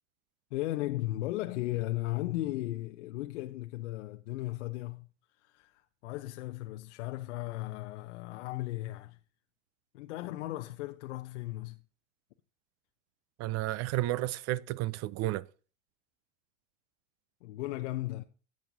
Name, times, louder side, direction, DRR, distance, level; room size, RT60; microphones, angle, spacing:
voice 1, 0.5-5.1 5.5-9.2 9.9-11.8 17.4-18.2, left 17 dB, 70° left, 0.7 m, -36 dB
voice 2, 13.4-15.5, right 16 dB, 45° right, 0.5 m, -32 dB
14.0 x 8.7 x 2.7 m
hypercardioid pair, 85°, 37 cm